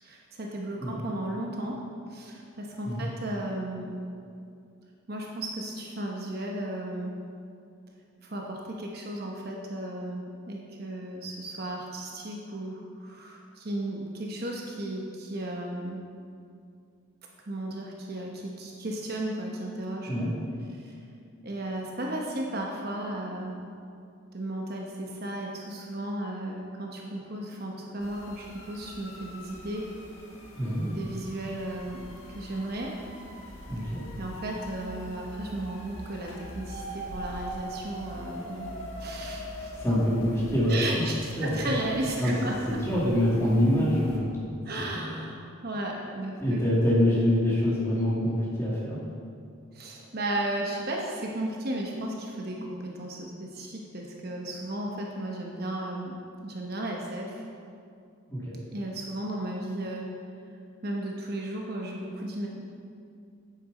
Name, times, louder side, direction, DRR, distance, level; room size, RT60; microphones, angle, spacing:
voice 1, 0.0-1.8 2.1-3.9 5.1-7.1 8.2-16.0 17.5-20.1 20.7-21.0 21.4-23.5 24.3-29.9 30.8-32.9 34.2-38.7 39.0-39.7 40.7-42.8 44.7-46.6 49.7-56.1 56.4-57.4 58.7-60.1 60.8-62.5, right 1 dB, 45° right, -1 dB, 0.9 m, -35 dB
sound 1, 28.0-44.2, equal, 80° left, 1.6 m, -42 dB
voice 2, 30.5-30.8 33.7-34.0 39.7-40.8 41.4-41.9 42.2-42.3 42.7-44.3 44.8-45.1 46.4-49.0 58.3-58.6, equal, 15° left, -8 dB, 2.4 m, -25 dB
9.3 x 8.0 x 4.1 m, 2.4 s
head